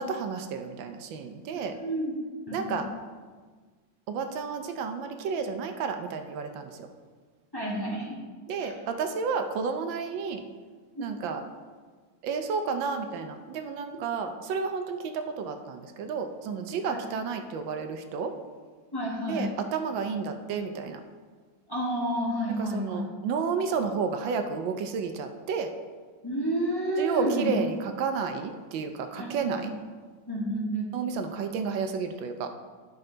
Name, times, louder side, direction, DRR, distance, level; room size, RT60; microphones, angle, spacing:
voice 1, 0.0-1.7 2.5-2.9 4.1-6.9 8.5-10.4 11.0-11.4 12.2-18.3 19.3-21.0 22.6-25.7 27.0-29.7 30.9-32.5, right 5 dB, 80° right, 7 dB, 1.4 m, -31 dB
voice 2, 1.7-2.2 2.5-2.8 7.5-8.2 8.6-8.7 10.9-11.3 16.9-17.0 18.9-19.5 21.7-23.0 26.2-27.5 29.1-29.3 29.6-29.7 30.3-30.9, right 1 dB, 15° left, -5 dB, 1.4 m, -30 dB
11.0 x 5.4 x 3.9 m, 1.5 s
omnidirectional pair, 2.1 m